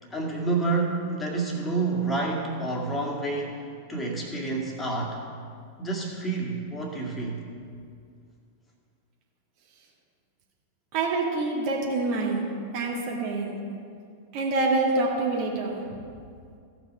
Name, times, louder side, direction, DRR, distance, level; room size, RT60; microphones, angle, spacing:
voice 1, 0.0-5.2 5.8-7.4, right 3 dB, 15° left, -1 dB, 2.1 m, -29 dB
voice 2, 10.9-12.4 12.7-13.5 14.3-15.8, right 3 dB, 45° right, -2 dB, 2.4 m, -26 dB
16.0 x 6.0 x 5.3 m, 2.3 s
figure-of-eight pair, 90°, 0 cm